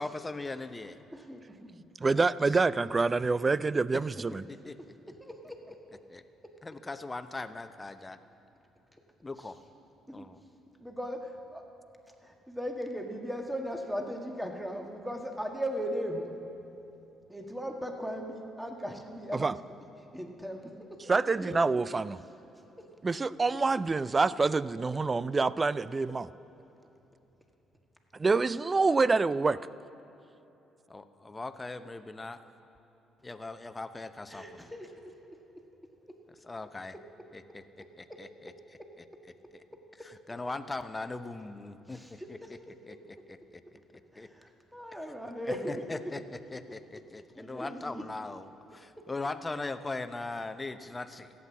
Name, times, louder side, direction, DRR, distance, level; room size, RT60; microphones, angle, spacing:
voice 1, 0.0-1.0 2.1-2.2 3.9-4.0 4.5-4.7 6.1-6.2 6.6-8.2 9.2-9.6 10.1-10.4 30.9-32.4 33.2-34.7 36.4-36.9 37.3-37.6 38.0-38.5 40.0-42.6 42.9-43.4 44.2-44.3 45.4-51.3, left 3 dB, 25° left, 11 dB, 0.8 m, -40 dB
voice 2, 1.1-1.8 5.2-5.8 6.4-6.5 9.4-9.5 10.1-10.3 10.8-11.6 12.2-16.3 17.3-19.5 20.1-21.0 21.4-21.6 22.8-22.9 34.3-35.6 36.1-36.2 36.9-37.0 38.1-38.2 38.8-38.9 41.9-43.2 44.1-46.0 47.3-48.0 49.0-49.1, equal, 5° right, 3 dB, 1.7 m, -38 dB
voice 3, 2.0-4.4 19.3-19.6 21.1-22.2 23.0-26.3 28.1-29.6, right 3 dB, 30° right, 19 dB, 0.4 m, -26 dB
16.0 x 8.6 x 7.4 m, 3.0 s
hypercardioid pair, 50°, 0 cm